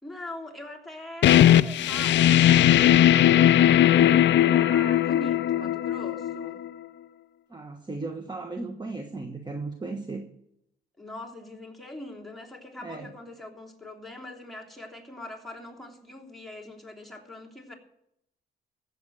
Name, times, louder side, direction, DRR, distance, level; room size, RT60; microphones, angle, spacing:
voice 1, 0.0-6.6 11.0-17.7, left 2 dB, ahead, -1 dB, 3.2 m, -42 dB
sound 1, 1.2-6.7, left 11 dB, 65° left, 0.5 m, -19 dB
voice 2, 7.5-10.3 12.8-13.1, right 3 dB, 20° right, 5 dB, 1.3 m, -36 dB
15.5 x 7.3 x 7.9 m, 0.78 s
cardioid pair, 90°, 20 cm